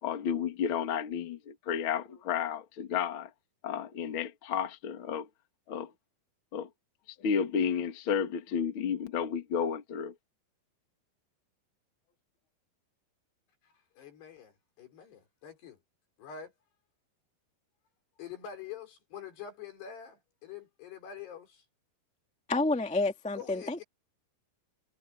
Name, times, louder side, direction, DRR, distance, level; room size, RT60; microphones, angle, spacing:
voice 1, 0.0-3.3 3.6-5.3 5.7-5.9 6.5-6.7 7.1-10.1, left 7 dB, 45° left, 1.8 m, -32 dB
voice 2, 14.0-15.8 16.2-16.5 18.2-21.6 23.3-23.8, left 8 dB, 75° left, 6.5 m, -45 dB
voice 3, 22.5-23.8, left 2 dB, 10° left, 0.4 m, -29 dB
omnidirectional pair, 4.8 m